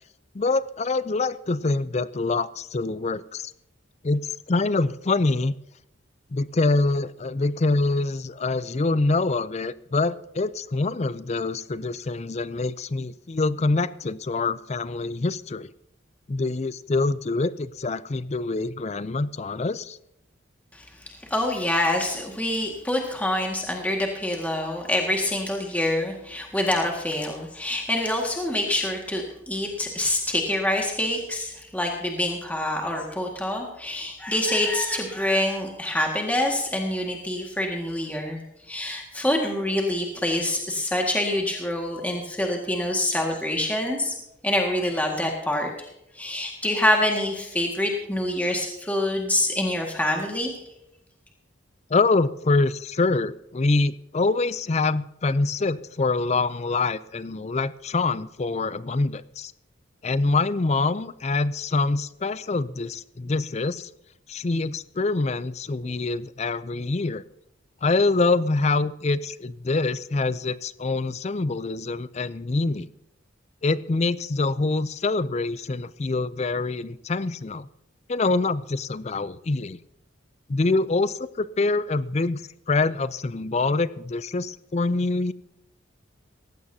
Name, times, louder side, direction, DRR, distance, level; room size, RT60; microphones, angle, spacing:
voice 1, 0.3-3.5 4.0-4.2 4.5-5.5 6.3-15.7 16.3-20.0 51.9-59.5 60.0-63.9 64.3-67.2 67.8-72.9 73.6-77.7 78.1-79.8 80.5-82.4 82.7-85.3, left 3 dB, 35° left, 16 dB, 0.4 m, -25 dB
voice 2, 20.7-38.4 38.7-44.1 44.4-45.9 46.2-50.5, left 1 dB, 10° left, 0 dB, 1.8 m, -26 dB
18.0 x 16.0 x 2.8 m, 0.83 s
head